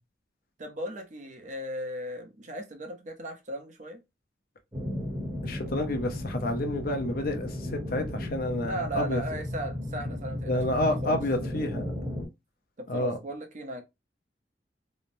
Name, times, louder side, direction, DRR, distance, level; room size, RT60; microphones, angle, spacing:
voice 1, 0.6-4.0 8.6-11.2 12.8-13.8, right 1 dB, 40° right, 0.6 m, -37 dB
sound 1, 4.7-12.2, left 1 dB, 20° right, 0.9 m, -35 dB
voice 2, 5.4-9.2 10.5-11.9 12.9-13.2, left 1 dB, 55° left, 0.6 m, -29 dB
3.0 x 2.0 x 2.5 m
head